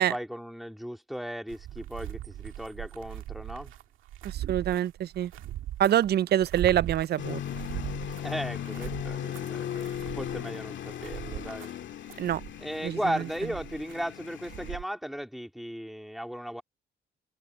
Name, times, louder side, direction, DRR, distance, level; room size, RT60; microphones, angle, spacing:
voice 1, 0.0-3.7 8.2-11.7 12.6-16.6, equal, ahead, 3.2 m, -36 dB
sound 1, 1.5-14.8, right 13 dB, 85° right, 2.0 m, -40 dB
voice 2, 4.2-5.3 5.8-7.4 12.2-12.4 12.8-13.3, right 11 dB, 55° right, 0.4 m, -26 dB
sound 2, 7.2-14.8, left 10 dB, 70° left, 2.1 m, -37 dB
cardioid pair, 90°, 20 cm